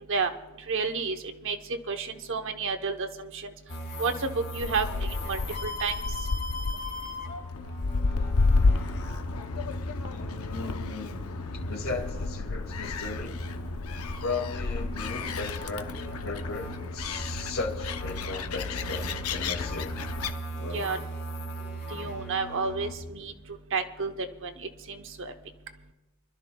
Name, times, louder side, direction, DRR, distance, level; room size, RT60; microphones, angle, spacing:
voice 1, 0.7-3.5 4.0-6.0 20.7-21.0 21.9-23.3 23.7-25.3, right 4 dB, 65° right, 7 dB, 0.9 m, -31 dB
sound 1, 3.7-22.9, equal, 50° left, 2.0 m, -39 dB
Gull seagull, 4.6-20.3, left 3 dB, 85° left, 0.7 m, -31 dB
voice 2, 10.1-11.2 11.6-13.4 14.2-15.9 16.2-19.9 20.6-20.9, left 3 dB, 70° left, 2 dB, 2.2 m, -36 dB
28.5 x 12.5 x 2.3 m, 1.1 s
head